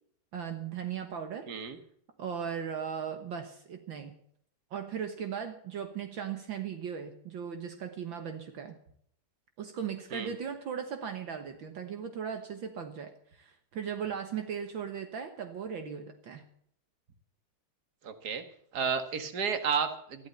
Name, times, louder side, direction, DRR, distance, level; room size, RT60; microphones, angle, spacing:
voice 1, 0.3-1.5 2.2-4.2 4.7-8.8 9.6-16.5, right 7 dB, 65° right, 6 dB, 2.0 m, -37 dB
voice 2, 1.5-1.8 10.1-10.3 18.0-18.4 18.7-20.3, right 6 dB, 50° right, 8 dB, 2.2 m, -32 dB
14.0 x 12.5 x 6.9 m, 0.66 s
omnidirectional pair, 2.3 m